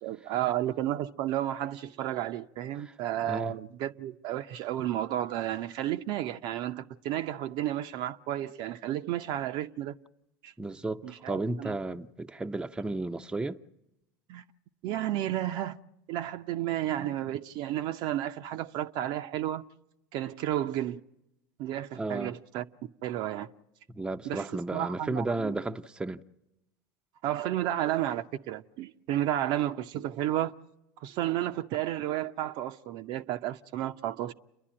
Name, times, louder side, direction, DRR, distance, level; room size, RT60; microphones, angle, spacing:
voice 1, 0.0-9.9 10.4-10.5 11.0-11.7 14.3-14.4 14.8-15.8 16.1-19.6 20.1-21.0 21.6-22.6 23.0-23.5 24.2-25.6 27.2-30.5 31.0-34.3, right 12 dB, 60° right, 0.7 m, -32 dB
voice 2, 10.6-13.6 22.0-22.4 23.9-26.2, right 2 dB, 10° right, 0.6 m, -33 dB
29.5 x 11.0 x 8.7 m
hypercardioid pair, 95°, 9 cm